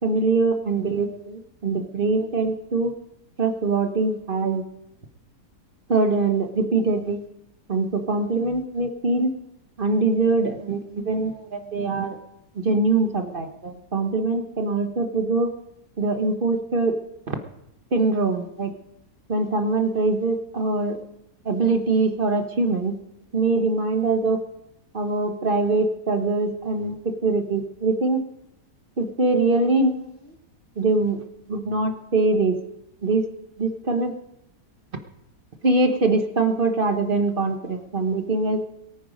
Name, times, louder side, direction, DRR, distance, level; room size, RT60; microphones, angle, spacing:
voice 1, 0.0-2.9 3.4-4.6 5.9-7.2 7.7-9.3 9.8-12.2 12.6-15.5 16.0-16.9 17.3-17.4 17.9-18.7 19.3-21.0 21.4-22.9 23.3-24.4 24.9-26.9 27.2-28.2 29.0-30.0 30.8-31.2 31.5-32.6 33.0-33.2 33.6-34.1 35.6-38.6, right 3 dB, 35° right, 6 dB, 1.3 m, -23 dB
22.5 x 9.4 x 5.1 m, 0.83 s
omnidirectional pair, 1.8 m